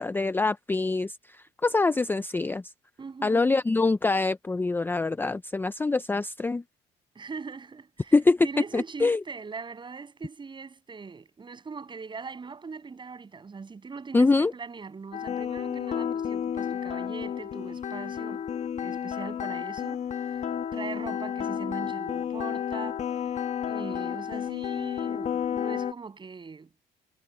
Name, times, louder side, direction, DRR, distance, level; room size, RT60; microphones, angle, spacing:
voice 1, 0.0-2.7 3.2-6.6 8.1-8.5 8.7-9.2 14.1-14.5, left 3 dB, 10° left, 0.5 m, -24 dB
voice 2, 3.0-3.5 7.1-8.2 8.4-18.4 18.8-23.2 23.6-26.7, right 5 dB, 30° right, 7.4 m, -41 dB
sound 1, 15.1-25.9, left 8 dB, 45° left, 1.2 m, -31 dB
cardioid pair, 110°, 17 cm